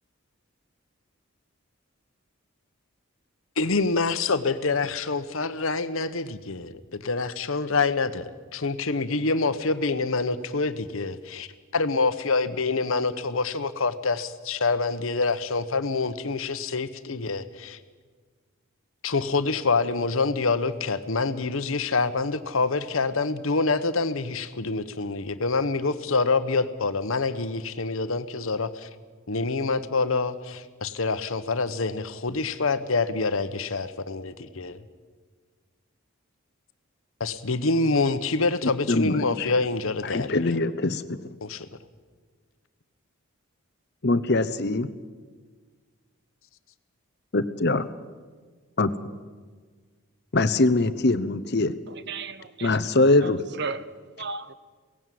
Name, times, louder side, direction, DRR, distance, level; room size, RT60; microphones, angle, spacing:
voice 1, 3.6-17.8 19.0-28.9 29.3-34.8 37.2-40.3 41.4-41.7, left 3 dB, 70° left, 12 dB, 1.0 m, -26 dB
voice 2, 38.9-39.5 40.0-41.2 44.0-44.9 47.3-47.9 48.8-48.9 50.3-51.7 52.6-53.5, left 2 dB, 50° left, 14 dB, 0.8 m, -23 dB
voice 3, 51.9-52.8 53.2-53.9 54.2-54.5, right 4 dB, 50° right, 14 dB, 0.8 m, -35 dB
17.5 x 16.5 x 9.3 m, 1.5 s
head